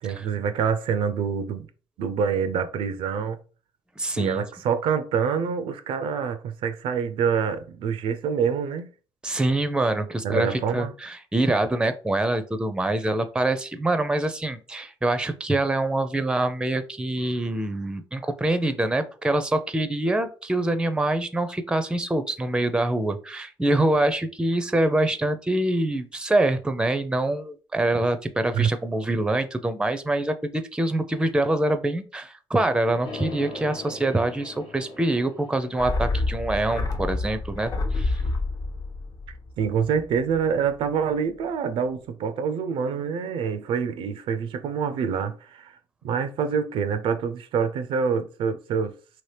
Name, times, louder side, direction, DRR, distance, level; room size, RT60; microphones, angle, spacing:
voice 1, 0.0-1.7 2.0-3.4 4.2-8.9 10.2-10.9 28.5-28.7 39.6-45.8 46.0-48.9, right 6 dB, 75° right, 0.4 m, -26 dB
voice 2, 4.0-4.4 9.2-38.2, right 1 dB, 10° right, 0.5 m, -25 dB
sound 1, 33.0-37.2, left 2 dB, 70° left, 1.0 m, -41 dB
sound 2, 35.8-40.4 40.6-40.7, left 2 dB, 45° left, 0.7 m, -28 dB
3.0 x 2.8 x 3.3 m
supercardioid pair, 70°, 9 cm